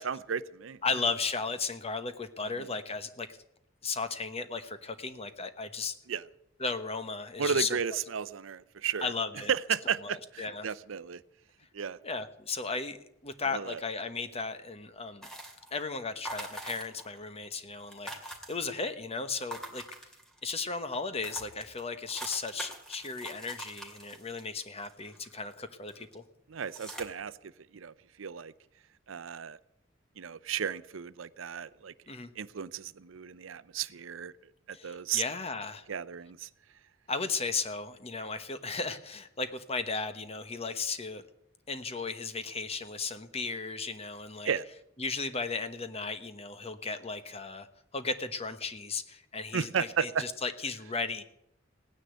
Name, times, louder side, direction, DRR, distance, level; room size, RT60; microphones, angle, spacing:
voice 1, 0.0-0.8 6.1-6.2 7.4-9.1 9.5-11.2 11.7-12.0 13.4-13.8 26.5-27.4 27.7-28.5 29.1-29.6 30.2-31.9 32.4-34.3 34.7-35.2 35.9-36.5 44.4-44.6 49.5-50.2, right 7 dB, 70° right, 16 dB, 0.6 m, -34 dB
voice 2, 0.8-3.4 3.8-5.9 6.6-7.8 9.0-9.5 10.0-10.7 12.0-13.0 13.2-15.3 15.7-19.8 20.4-26.2 32.1-32.3 34.7-35.9 37.1-41.2 41.7-44.5 45.0-47.7 47.9-51.2, left 4 dB, 30° left, 10 dB, 1.1 m, -35 dB
sound 1, 15.2-15.8 16.2-17.2 17.4-17.5 17.7-18.9 19.4-20.5 20.9-21.0 21.2-25.5 25.9-26.1 26.6-27.0, right 1 dB, 5° left, 2.4 m, -43 dB
17.5 x 9.7 x 8.2 m, 0.79 s
head